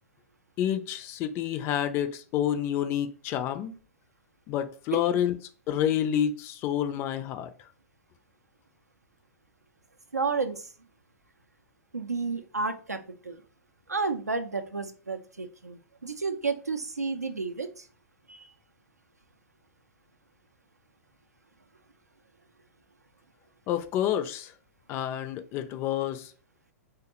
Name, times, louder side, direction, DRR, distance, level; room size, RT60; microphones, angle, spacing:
voice 1, 0.6-3.7 4.5-5.3 5.7-7.5 23.7-24.5 24.9-26.3, left 10 dB, 30° left, 0.3 m, -28 dB
voice 2, 10.1-10.6 11.9-13.4 13.9-17.9 18.3-18.5, right 4 dB, 90° right, 0.4 m, -31 dB
3.3 x 2.1 x 2.8 m
figure-of-eight pair, 105°, 8 cm